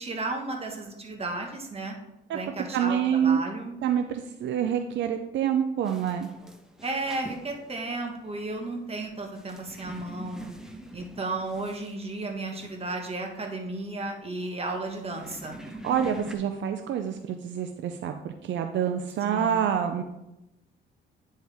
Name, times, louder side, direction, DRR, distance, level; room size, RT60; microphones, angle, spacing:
voice 1, 0.0-2.0 2.3-3.8 6.8-10.5 10.9-15.6 19.2-19.6, right 2 dB, 30° right, 3 dB, 1.4 m, -34 dB
voice 2, 2.7-3.4 3.8-6.3 15.8-20.0, right 8 dB, 70° right, 6 dB, 0.5 m, -27 dB
sound 1, 5.8-16.4, right 1 dB, 5° right, 0.9 m, -46 dB
9.3 x 4.5 x 3.5 m, 0.91 s
cardioid pair, 90°, 20 cm